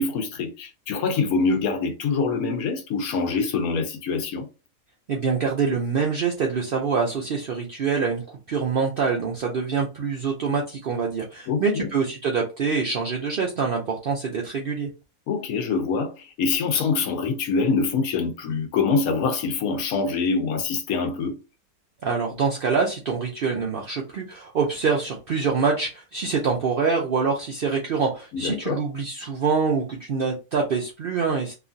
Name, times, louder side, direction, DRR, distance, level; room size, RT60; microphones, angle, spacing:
voice 1, 0.0-4.5 11.5-11.9 15.3-21.4 28.3-28.8, left 4 dB, 80° left, 1.1 m, -25 dB
voice 2, 5.1-14.9 22.0-31.5, right 5 dB, 70° right, 0.5 m, -25 dB
2.9 x 2.4 x 2.5 m
omnidirectional pair, 1.5 m